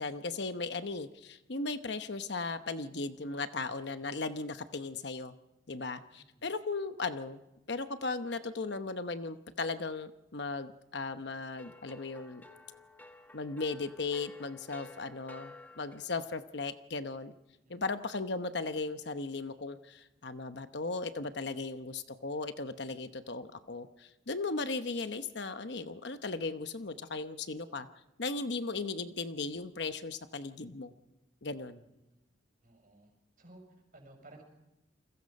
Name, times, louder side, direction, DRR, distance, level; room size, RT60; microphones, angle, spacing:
voice 1, 0.0-5.3 5.7-7.4 7.7-12.4 13.3-17.3 17.7-27.9 28.2-30.9 31.4-31.8, left 3 dB, 60° left, 9 dB, 1.0 m, -37 dB
voice 2, 6.1-6.5 17.6-17.9 32.0-32.2 32.6-33.1 33.4-34.4, right 2 dB, 45° right, 3 dB, 6.6 m, -57 dB
sound 1, 11.5-16.3, left 2 dB, 10° left, 1.6 m, -53 dB
29.5 x 21.5 x 5.4 m, 0.96 s
head